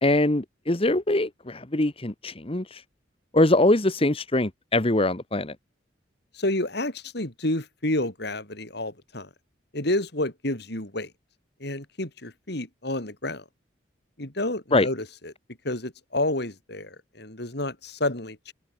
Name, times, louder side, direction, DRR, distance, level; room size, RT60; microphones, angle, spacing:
voice 1, 0.0-2.8 3.3-5.5 14.7-14.9, left 2 dB, 30° left, 1.3 m, -23 dB
voice 2, 6.3-9.3 9.7-11.1 11.6-13.4 14.2-15.3 15.6-18.5, left 1 dB, 60° left, 4.1 m, -30 dB
open air
head